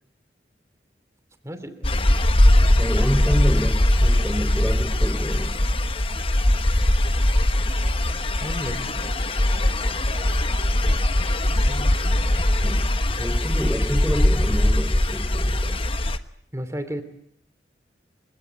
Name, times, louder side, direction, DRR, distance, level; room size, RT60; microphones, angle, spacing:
voice 1, 1.4-1.9 8.4-9.1 11.7-11.9 16.5-17.0, equal, 15° right, 10 dB, 2.8 m, -33 dB
sound 1, 1.8-16.2, left 1 dB, 30° left, 1.1 m, -21 dB
voice 2, 2.7-5.5 12.6-12.9 13.2-15.8, equal, ahead, 7 dB, 3.6 m, -28 dB
30.0 x 16.5 x 9.3 m, 0.70 s
head